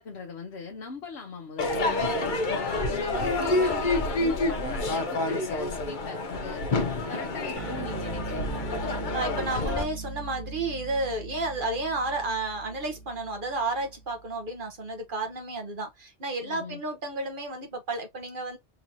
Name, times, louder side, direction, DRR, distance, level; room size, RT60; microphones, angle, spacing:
voice 1, 0.0-2.0 2.5-6.7 7.1-8.8 16.4-16.8, left 4 dB, 70° left, 1.1 m, -40 dB
Crowd / Fireworks, 1.6-9.8, left 2 dB, 50° left, 0.9 m, -28 dB
sound 1, 7.6-14.4, right 3 dB, 75° right, 1.4 m, -39 dB
voice 2, 9.1-18.6, right 2 dB, 50° right, 1.2 m, -32 dB
3.9 x 2.9 x 2.6 m
omnidirectional pair, 1.2 m